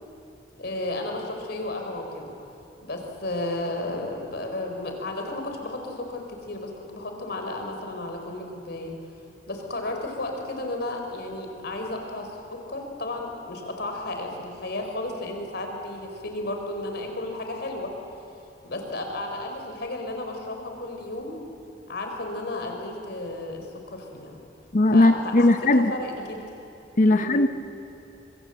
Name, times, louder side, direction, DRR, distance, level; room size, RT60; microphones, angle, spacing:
voice 1, 0.6-2.3 2.8-8.9 9.5-17.9 18.6-21.4 21.9-24.4 24.9-26.4 27.1-27.4, left 2 dB, 60° left, 3 dB, 4.3 m, -33 dB
voice 2, 24.7-25.9 27.0-27.5, left 2 dB, 45° left, 8 dB, 0.8 m, -18 dB
25.5 x 24.5 x 8.0 m, 2.8 s
head